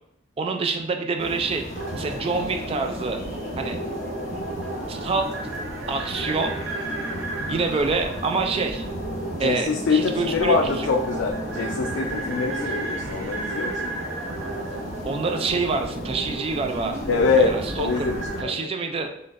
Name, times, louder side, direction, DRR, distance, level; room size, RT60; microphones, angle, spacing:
voice 1, 0.4-1.7 1.9-3.2 3.6-3.8 4.9-5.3 5.9-6.5 7.5-8.8 9.4-10.9 15.1-17.0 17.4-18.1 18.4-19.1, right 4 dB, 30° right, 4 dB, 0.3 m, -26 dB
sound 1, 1.2-18.4, left 1 dB, 40° left, 1.2 m, -37 dB
sound 2, 1.7-18.4, right 2 dB, 85° right, 0.7 m, -33 dB
voice 2, 9.4-13.9 17.1-18.7, left 4 dB, 85° left, 1 dB, 0.4 m, -24 dB
3.8 x 3.2 x 2.5 m, 0.76 s
head